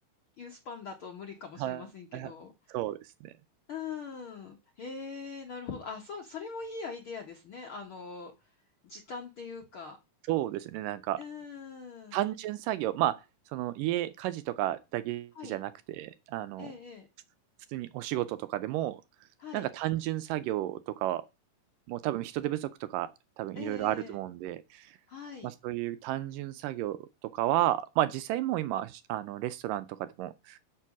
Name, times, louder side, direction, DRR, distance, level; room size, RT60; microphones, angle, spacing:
voice 1, 0.4-2.5 3.7-8.3 8.8-10.0 11.2-12.2 15.3-15.6 16.6-17.1 19.4-19.7 23.5-24.1 25.1-25.5, left 5 dB, 70° left, 1.2 m, -42 dB
voice 2, 2.7-3.3 10.3-11.2 12.1-13.2 13.5-16.7 17.7-19.0 19.5-21.3 21.9-23.1 23.4-25.0 25.4-27.0 27.3-30.6, right 14 dB, 80° right, 2.1 m, -32 dB
7.3 x 6.9 x 6.0 m
omnidirectional pair, 4.1 m